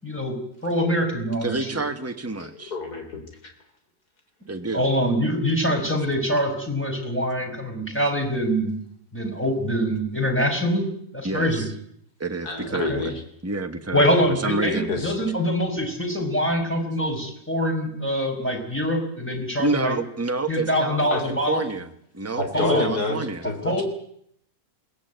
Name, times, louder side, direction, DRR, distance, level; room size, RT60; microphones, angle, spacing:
voice 1, 0.0-1.8 4.7-8.7 9.1-10.9 11.1-11.6 12.7-13.0 13.9-20.0 20.5-21.6 22.5-22.9 23.6-23.8, equal, 5° left, 1 dB, 5.2 m, -24 dB
voice 2, 1.4-2.7 4.5-4.9 11.2-11.7 12.2-13.0 13.4-14.9 19.6-21.9 22.1-23.5, right 3 dB, 10° right, 7 dB, 1.3 m, -28 dB
voice 3, 2.4-3.5 12.4-13.2 14.9-15.1 21.1-21.2 22.3-23.8, left 3 dB, 90° left, 5 dB, 4.0 m, -28 dB
21.5 x 17.5 x 9.3 m, 0.71 s
omnidirectional pair, 1.6 m